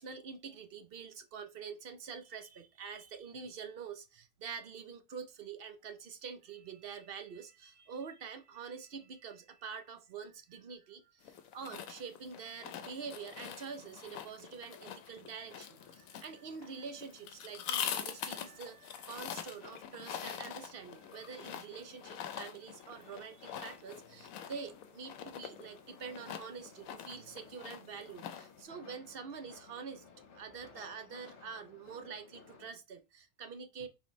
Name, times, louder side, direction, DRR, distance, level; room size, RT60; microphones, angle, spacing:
voice 1, 0.0-30.0 30.3-33.9, right 6 dB, 55° right, 0.7 m, -46 dB
sound 1, 11.2-28.6, left 9 dB, 85° left, 1.0 m, -44 dB
sound 2, 13.7-32.7, left 5 dB, 60° left, 1.2 m, -60 dB
4.3 x 4.0 x 3.0 m
omnidirectional pair, 1.4 m